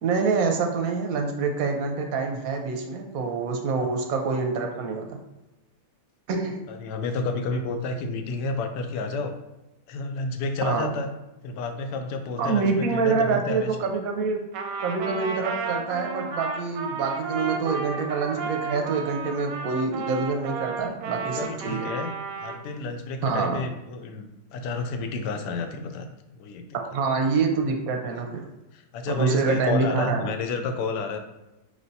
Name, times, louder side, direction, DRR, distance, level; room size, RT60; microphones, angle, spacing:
voice 1, 0.0-5.2 6.3-6.7 10.6-10.9 12.4-14.4 14.8-21.9 23.2-23.6 26.7-28.5 29.1-30.3, right 4 dB, 70° right, 3 dB, 0.9 m, -26 dB
voice 2, 6.7-9.3 9.9-11.1 11.4-14.0 21.2-22.1 22.4-24.3 24.5-26.1 26.3-26.6 28.7-31.2, left 3 dB, 80° left, 6 dB, 1.2 m, -30 dB
Trumpet, 14.5-22.6, right 4 dB, 90° right, 1.2 m, -33 dB
4.9 x 3.2 x 2.6 m, 0.98 s
omnidirectional pair, 1.8 m